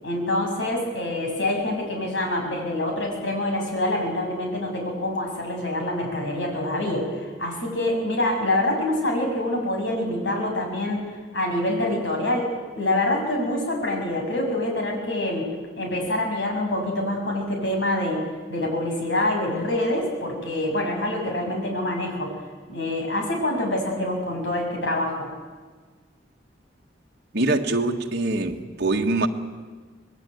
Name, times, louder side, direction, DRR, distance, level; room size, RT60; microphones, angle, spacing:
voice 1, 0.0-11.1 11.3-12.5 12.8-15.5 15.8-18.2 18.5-22.3 22.7-25.3, left 1 dB, 75° left, 2 dB, 6.9 m, -26 dB
voice 2, 27.3-29.3, right 2 dB, 60° right, 2 dB, 1.6 m, -23 dB
25.5 x 19.5 x 9.3 m, 1.4 s
head